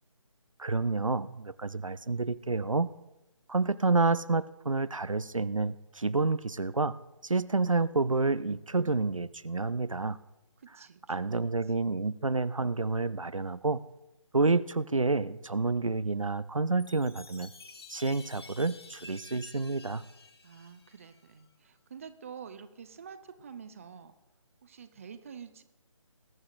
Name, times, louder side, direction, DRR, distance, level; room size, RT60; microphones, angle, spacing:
voice 1, 0.6-2.9 3.5-7.0 7.2-10.2 11.1-13.8 14.3-17.5 17.9-20.0, right 3 dB, 85° right, 15 dB, 0.6 m, -29 dB
voice 2, 10.6-11.5 20.4-24.2 24.6-25.6, right 7 dB, 25° right, 11 dB, 0.6 m, -48 dB
Chime, 16.8-21.4, left 3 dB, 50° left, 1.3 m, -51 dB
22.0 x 11.0 x 2.6 m, 0.94 s
figure-of-eight pair, 150°, 16 cm